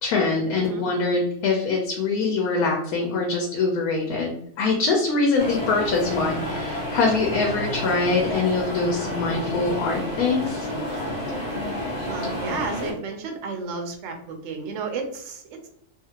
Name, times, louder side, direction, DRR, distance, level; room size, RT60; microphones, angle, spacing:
voice 1, 0.0-10.7, left 3 dB, 75° left, 0 dB, 1.0 m, -24 dB
voice 2, 0.6-0.9 12.1-15.7, right 4 dB, 65° right, 3 dB, 0.8 m, -32 dB
sound 1, 5.4-12.9, left 1 dB, 50° left, 0.5 m, -30 dB
2.7 x 2.4 x 2.8 m, 0.70 s
omnidirectional pair, 1.6 m